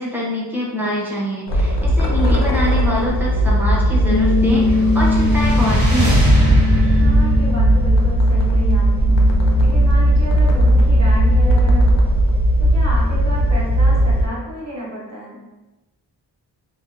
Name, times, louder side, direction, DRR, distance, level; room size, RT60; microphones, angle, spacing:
voice 1, 0.0-6.2, equal, 5° right, -5 dB, 0.6 m, -24 dB
sound 1, 1.5-14.3, right 1 dB, 85° left, 0.6 m, -16 dB
voice 2, 2.2-2.6 7.0-9.2 9.6-12.1 12.6-15.5, right 1 dB, 40° right, -6 dB, 1.0 m, -31 dB
sound 2, 4.0-10.1 10.5-11.9, left 3 dB, 35° left, 0.5 m, -24 dB
sound 3, 4.2-9.7, equal, 90° right, 1.0 m, -20 dB
2.7 x 2.2 x 2.5 m, 1.1 s
wide cardioid pair, 110°, 42 cm